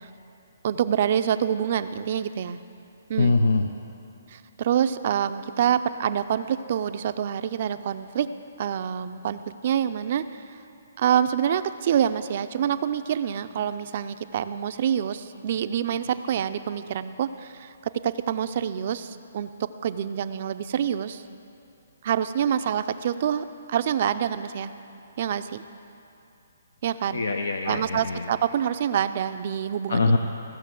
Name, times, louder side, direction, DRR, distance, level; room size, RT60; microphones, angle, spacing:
voice 1, 0.6-2.6 3.1-3.3 4.3-8.3 8.6-10.3 11.0-21.2 22.0-24.7 25.2-25.6 26.8-27.3 27.6-30.1, right 9 dB, 45° right, 12 dB, 0.4 m, -26 dB
voice 2, 3.2-3.7 27.1-28.2 29.9-30.2, left 3 dB, 85° left, 5 dB, 0.7 m, -22 dB
15.5 x 6.4 x 7.5 m, 2.8 s
hypercardioid pair, 160°, 0 cm